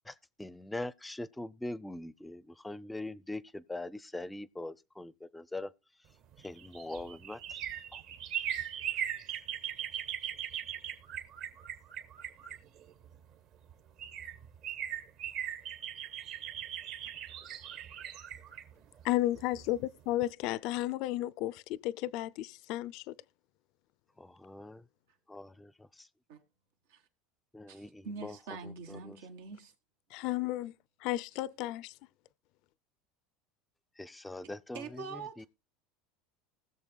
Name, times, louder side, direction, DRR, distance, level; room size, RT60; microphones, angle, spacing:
voice 1, 0.4-5.7 6.4-7.4 7.9-8.0 24.2-24.8 25.3-26.1 27.5-28.4 28.6-29.2 34.0-35.5, left 2 dB, 10° left, 0.5 m, -42 dB
sound 1, 6.3-13.1 13.7-13.8 14.0-19.8 20.1-20.2, right 10 dB, 55° right, 1.6 m, -39 dB
voice 2, 19.0-23.0 30.1-30.7 31.0-31.9, left 16 dB, 60° left, 0.4 m, -33 dB
voice 3, 27.7-29.7 34.7-35.5, right 4 dB, 90° right, 1.9 m, -44 dB
20.0 x 6.9 x 2.3 m
supercardioid pair, 125°, 0 cm